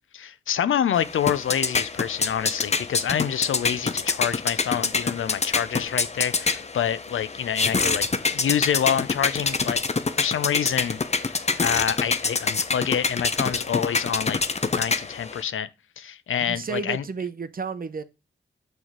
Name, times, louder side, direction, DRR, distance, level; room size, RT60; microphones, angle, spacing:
voice 1, 0.1-8.1 8.3-9.8 10.2-14.4 14.7-15.7 16.0-17.0, left 9 dB, 80° left, 0.5 m, -27 dB
sound 1, 0.9-15.4, left 4 dB, 30° left, 0.6 m, -26 dB
voice 2, 16.5-18.0, right 4 dB, 45° right, 0.7 m, -31 dB
6.3 x 3.5 x 5.9 m
cardioid pair, 70°, 20 cm